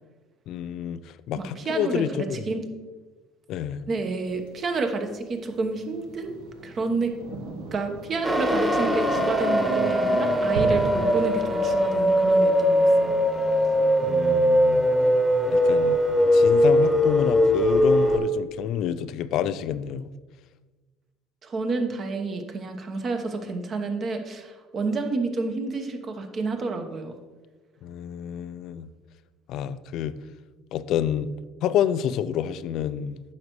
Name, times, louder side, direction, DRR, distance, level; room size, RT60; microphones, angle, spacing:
voice 1, 0.5-2.4 3.5-3.8 14.0-14.9 15.5-16.0 16.3-20.1 27.8-28.9 29.5-30.1 30.7-31.3 31.6-33.2, left 9 dB, 65° left, 14 dB, 0.4 m, -28 dB
voice 2, 1.3-2.7 3.9-6.3 6.6-7.1 7.7-13.1 21.4-27.1, right 3 dB, 45° right, 6 dB, 1.1 m, -29 dB
Thunder, 4.3-16.2, right 1 dB, 80° right, 1.0 m, -40 dB
sound 1, 8.2-18.2, equal, 15° right, 1.4 m, -21 dB
9.5 x 6.5 x 3.1 m, 1.3 s
supercardioid pair, 80°, 0 cm